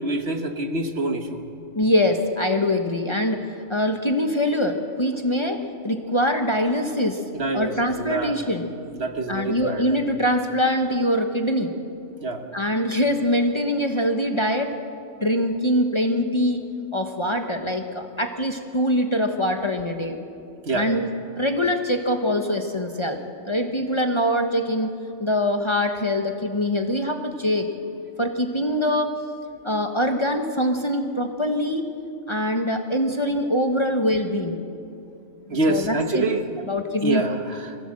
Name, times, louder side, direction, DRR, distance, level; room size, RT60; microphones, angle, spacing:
voice 1, 0.0-1.4 7.3-8.4 8.9-10.0 12.2-12.4 20.6-20.9 35.5-36.5 37.0-37.8, right 2 dB, 55° right, 6 dB, 1.5 m, -26 dB
voice 2, 1.7-3.4 3.7-7.2 7.5-8.7 9.3-11.7 12.5-14.7 15.2-16.7 16.9-20.2 20.7-24.9 25.2-27.7 28.2-29.1 29.6-31.9 32.3-34.6 35.5-36.3 36.7-37.2, equal, 25° left, 4 dB, 1.1 m, -23 dB
24.0 x 16.0 x 7.6 m, 2.5 s
omnidirectional pair, 1.3 m